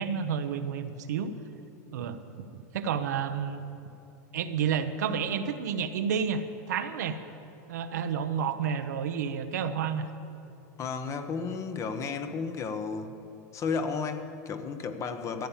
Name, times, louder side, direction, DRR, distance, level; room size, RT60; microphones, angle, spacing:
voice 1, 0.0-1.3 1.9-3.6 4.3-6.4 6.7-7.2 7.7-10.1, right 7 dB, 90° right, 8 dB, 0.9 m, -30 dB
voice 2, 10.8-13.2 13.5-15.5, left 5 dB, 35° left, 8 dB, 1.0 m, -33 dB
14.0 x 8.7 x 7.3 m, 2.7 s
supercardioid pair, 120°, 9 cm